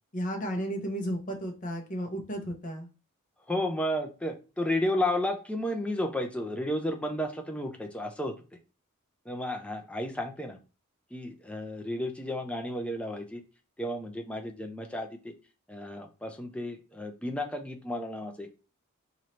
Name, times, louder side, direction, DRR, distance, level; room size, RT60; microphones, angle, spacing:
voice 1, 0.1-2.9, equal, 35° left, 2 dB, 0.8 m, -33 dB
voice 2, 3.5-8.4 9.3-10.6 11.1-13.4 13.8-15.3 15.7-18.6, left 1 dB, 5° left, 3 dB, 0.4 m, -32 dB
3.0 x 2.7 x 4.2 m, 0.33 s
head